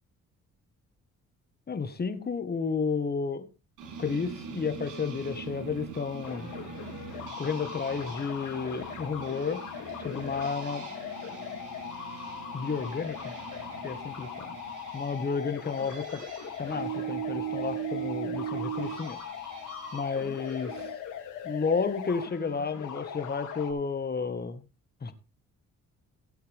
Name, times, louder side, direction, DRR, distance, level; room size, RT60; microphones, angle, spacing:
voice 1, 1.7-3.5 4.0-6.5 7.4-9.6 10.0-10.8 12.5-13.3 13.8-14.5 14.9-16.2 16.6-19.2 19.9-20.7 21.4-24.6 25.0-25.1, left 5 dB, 30° left, 1.8 m, -31 dB
sound 1, 3.8-20.9, right 9 dB, 85° right, 6.0 m, -40 dB
sound 2, 6.2-23.7, left 8 dB, 90° left, 3.6 m, -40 dB
16.5 x 8.4 x 3.6 m
cardioid pair, 90°, 30 cm